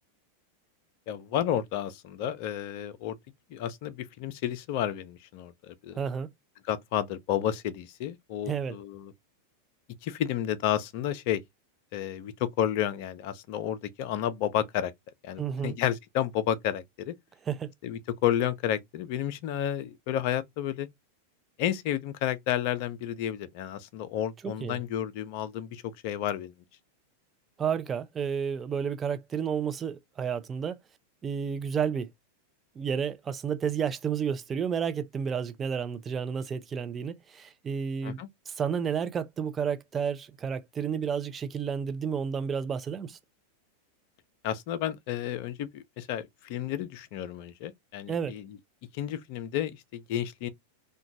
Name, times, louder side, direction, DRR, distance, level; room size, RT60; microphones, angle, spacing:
voice 1, 1.1-3.2 3.5-6.0 6.7-9.1 10.0-11.4 11.9-14.9 15.2-17.1 17.8-20.9 21.6-26.5 38.0-38.3 44.4-48.6 48.9-50.5, left 11 dB, 45° left, 0.4 m, -31 dB
voice 2, 5.9-6.3 8.5-8.8 15.4-15.8 17.5-17.7 24.4-24.8 27.6-30.8 31.2-32.1 32.8-38.2 38.5-43.2 48.1-48.3, right 7 dB, 20° right, 0.4 m, -31 dB
2.8 x 2.2 x 2.6 m
figure-of-eight pair, 90°, 0 cm